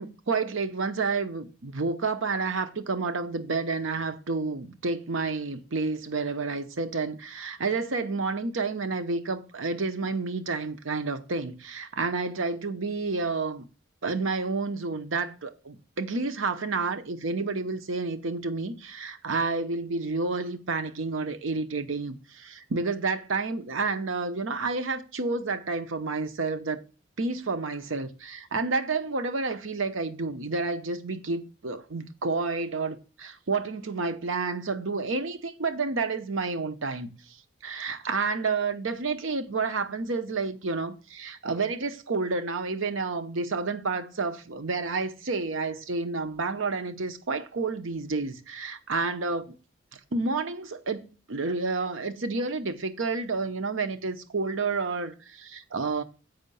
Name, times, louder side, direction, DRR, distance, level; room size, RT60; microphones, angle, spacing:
voice 1, 0.0-13.6 14.0-26.8 27.2-37.4 37.6-49.5 49.9-56.0, right 3 dB, 75° right, 0.8 m, -30 dB
7.9 x 5.6 x 5.4 m
head